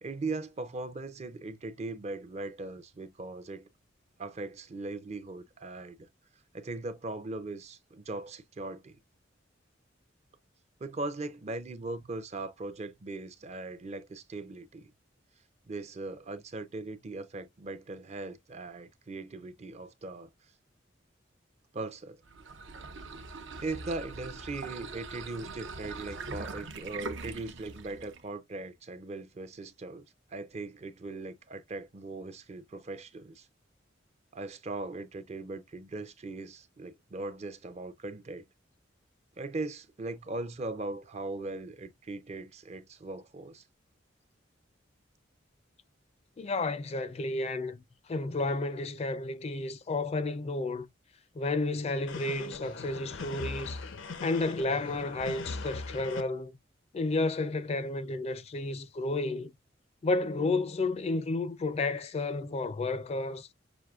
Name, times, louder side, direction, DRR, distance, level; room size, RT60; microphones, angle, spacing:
voice 1, 0.0-3.7 4.2-6.0 6.5-9.0 10.8-14.9 15.7-20.3 21.7-22.2 23.6-30.1 30.3-33.5 34.3-38.5 39.4-43.6, right 2 dB, 35° right, 0.5 m, -39 dB
sound 1, 22.2-28.3, right 3 dB, 75° right, 0.7 m, -42 dB
voice 2, 46.4-47.8 48.1-50.9 51.4-53.8 54.2-56.5 56.9-59.5 60.0-63.5, left 2 dB, 35° left, 0.4 m, -31 dB
sound 2, 52.1-56.2, left 3 dB, 85° left, 0.6 m, -40 dB
6.2 x 2.6 x 2.3 m
head